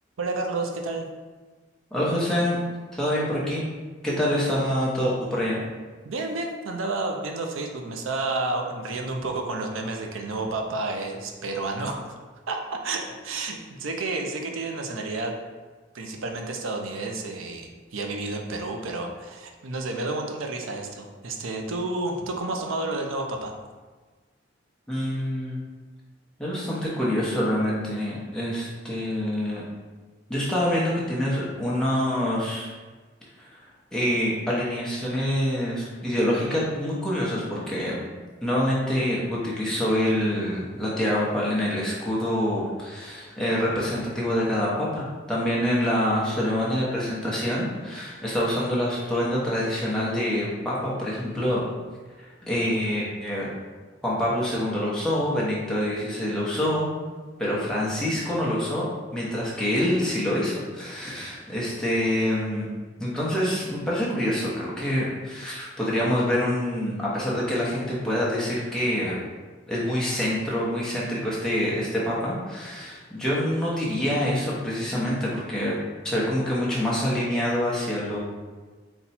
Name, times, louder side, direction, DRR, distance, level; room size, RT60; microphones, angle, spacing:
voice 1, 0.2-1.1 6.0-12.1 12.5-15.3 15.9-23.5, right 2 dB, 80° right, 3 dB, 0.5 m, -30 dB
voice 2, 1.9-2.6 2.9-3.7 4.0-5.6 24.9-25.6 26.4-29.6 30.3-32.7 33.4-33.5 33.9-38.0 38.4-51.6 52.2-53.5 54.0-56.9 57.4-58.9 59.1-62.7 63.0-69.2 69.7-75.8 76.0-78.2, equal, 5° left, -7 dB, 0.8 m, -26 dB
4.1 x 2.2 x 4.1 m, 1.3 s
head